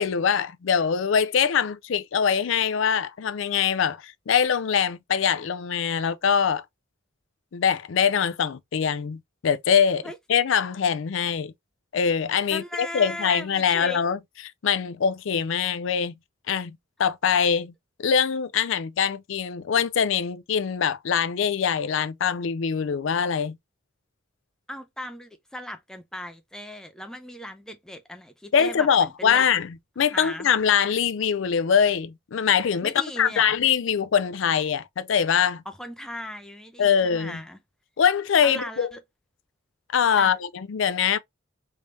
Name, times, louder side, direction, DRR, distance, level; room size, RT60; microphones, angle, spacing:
voice 1, 0.0-6.6 7.5-11.5 11.9-14.2 14.6-16.1 16.5-17.7 18.0-23.6 28.5-35.6 36.8-37.4 38.0-38.9 39.9-41.2, left 7 dB, 70° left, 0.4 m, -23 dB
voice 2, 12.5-14.0 24.7-29.4 30.1-30.5 32.8-33.6 35.7-37.6 38.4-39.0 40.2-40.4, left 1 dB, 5° left, 0.5 m, -37 dB
3.4 x 3.2 x 2.6 m
head